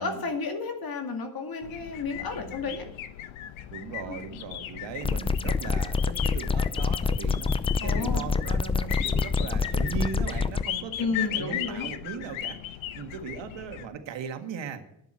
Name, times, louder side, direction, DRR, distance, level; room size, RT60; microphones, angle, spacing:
voice 1, 0.0-2.9 4.1-4.2 7.8-8.3 11.0-11.9, left 4 dB, 45° left, 4 dB, 2.2 m, -32 dB
sound 1, 1.6-13.9, left 12 dB, 75° left, 1.0 m, -37 dB
voice 2, 2.1-2.8 3.7-12.6 12.9-14.9, right 7 dB, 65° right, 6 dB, 1.8 m, -38 dB
sound 2, 5.0-10.6, left 4 dB, 15° left, 0.4 m, -26 dB
10.5 x 7.1 x 8.7 m, 0.78 s
cardioid pair, 90°, 48 cm